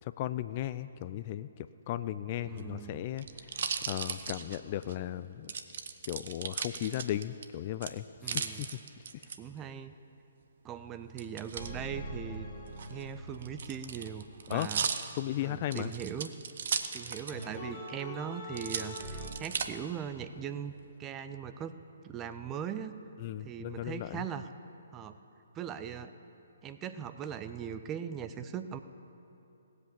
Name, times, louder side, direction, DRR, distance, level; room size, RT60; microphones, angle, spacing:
voice 1, 0.0-3.3 3.9-5.5 6.0-8.7 14.5-14.7 15.2-15.9 23.2-24.3, left 13 dB, 35° left, 13 dB, 0.3 m, -36 dB
voice 2, 2.4-3.0 8.2-8.6 9.4-9.9 10.6-12.5 12.9-14.8 15.4-16.3 16.9-20.7 21.0-21.8 22.0-23.0 23.4-24.5 24.9-25.2 25.5-26.1 26.6-28.8, right 8 dB, 20° right, 10 dB, 0.5 m, -40 dB
sound 1, 2.4-5.0 5.5-7.4 7.8-9.4 11.2-11.7 12.7-17.6 17.9-18.0 18.5-19.7 20.3-20.8, right 6 dB, 55° right, 0.7 m, -37 dB
sound 2, 11.6-15.0 17.3-19.3, equal, 10° left, 2.3 m, -43 dB
17.5 x 8.0 x 7.1 m, 2.8 s
figure-of-eight pair, 130°, 0 cm